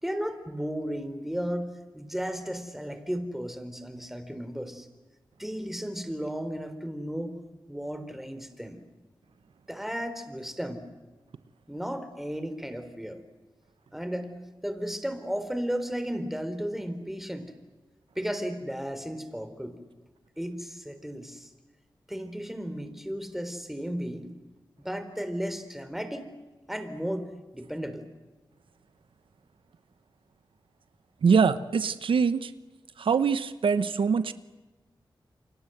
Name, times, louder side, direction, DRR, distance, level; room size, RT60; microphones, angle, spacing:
voice 1, 0.0-4.9 5.4-7.4 7.7-8.8 9.7-10.8 11.7-13.2 13.9-14.3 14.6-17.5 18.2-19.8 20.4-21.5 22.1-24.3 24.8-26.3 26.7-28.0, equal, 5° right, 9 dB, 3.8 m, -34 dB
voice 2, 31.2-32.5 33.0-34.3, right 6 dB, 90° right, 13 dB, 0.9 m, -23 dB
29.0 x 24.5 x 7.9 m, 1.2 s
cardioid pair, 60°, 9 cm